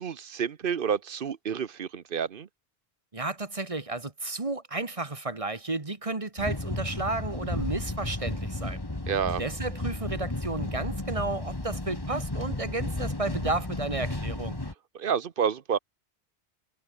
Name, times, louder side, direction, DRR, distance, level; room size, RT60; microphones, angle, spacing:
voice 1, 0.0-2.5 9.1-9.4 14.9-15.8, right 7 dB, 60° right, 1.0 m, -29 dB
voice 2, 3.1-8.8 9.4-14.6, right 2 dB, 30° right, 1.6 m, -32 dB
sound 1, 6.4-14.7, left 2 dB, 20° left, 2.1 m, -33 dB
omnidirectional pair, 1.1 m